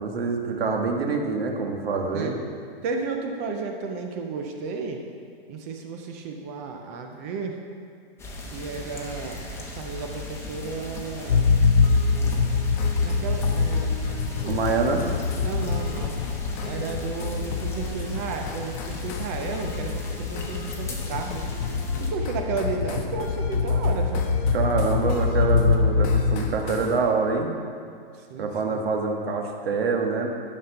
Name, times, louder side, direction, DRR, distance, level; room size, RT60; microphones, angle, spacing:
voice 1, 0.0-2.4 14.4-15.1 24.5-27.5 28.4-30.3, right 4 dB, 80° right, 2 dB, 1.4 m, -25 dB
voice 2, 2.8-5.0 5.5-7.6 8.5-11.5 13.0-13.9 14.3-14.7 15.4-16.2 16.6-21.5 22.0-24.3 28.1-28.8, right 4 dB, 15° right, 4 dB, 0.3 m, -33 dB
sound 1, 8.2-22.1, left 2 dB, 10° left, 0.8 m, -37 dB
sound 2, 11.3-26.9, left 5 dB, 75° left, 0.7 m, -24 dB
sound 3, 11.8-27.0, left 4 dB, 35° left, 1.0 m, -39 dB
11.0 x 5.7 x 5.6 m, 2.3 s
hypercardioid pair, 150°, 30 cm